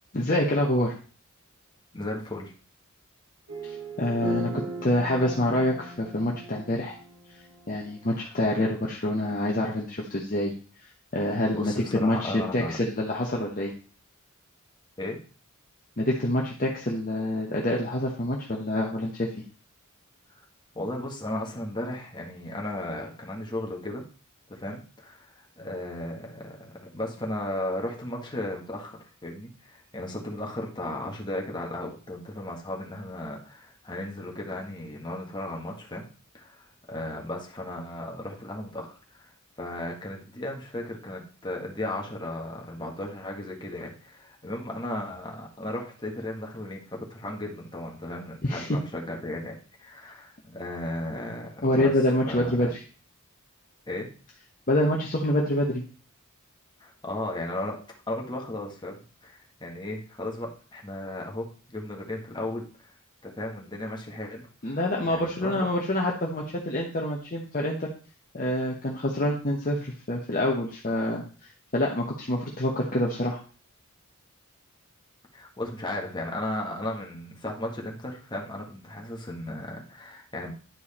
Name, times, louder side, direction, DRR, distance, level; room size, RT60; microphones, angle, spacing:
voice 1, 0.1-0.9 3.6-7.0 7.7-10.5 11.1-13.7 16.0-19.3 48.4-48.7 51.6-52.8 54.7-55.8 64.6-67.9 68.3-73.4, left 1 dB, 40° left, -2 dB, 1.1 m, -26 dB
voice 2, 1.9-2.5 11.5-12.8 15.0-15.2 20.7-24.0 24.5-25.3 25.6-36.1 36.3-36.6 36.9-39.3 39.6-51.9 52.2-52.7 53.9-54.1 56.8-57.8 58.1-62.7 63.2-64.8 65.0-65.7 75.3-80.5, left 1 dB, 20° left, 0 dB, 1.7 m, -35 dB
sound 1, 3.5-7.9, right 2 dB, 65° right, 2.2 m, -38 dB
10.5 x 4.7 x 4.3 m, 0.39 s
head